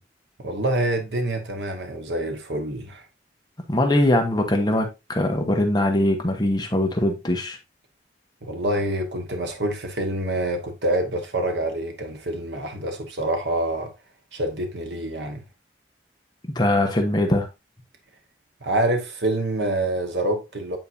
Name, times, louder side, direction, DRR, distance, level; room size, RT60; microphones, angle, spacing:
voice 1, 0.4-3.0 8.4-13.9 14.3-15.4 18.6-20.8, right 1 dB, 75° right, 1.2 m, -26 dB
voice 2, 3.7-7.6 16.4-17.5, left 1 dB, 25° left, 1.1 m, -21 dB
9.0 x 4.3 x 2.6 m
head